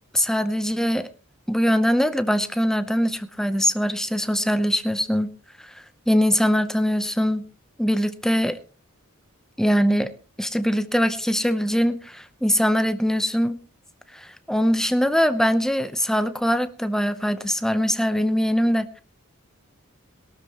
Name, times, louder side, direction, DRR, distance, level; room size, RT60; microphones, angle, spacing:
voice 1, 0.1-1.1 1.5-5.3 5.7-7.5 7.8-8.6 9.6-10.1 10.4-13.6 14.1-19.0, equal, ahead, 11 dB, 0.8 m, -22 dB
22.0 x 12.5 x 3.0 m, 0.36 s
head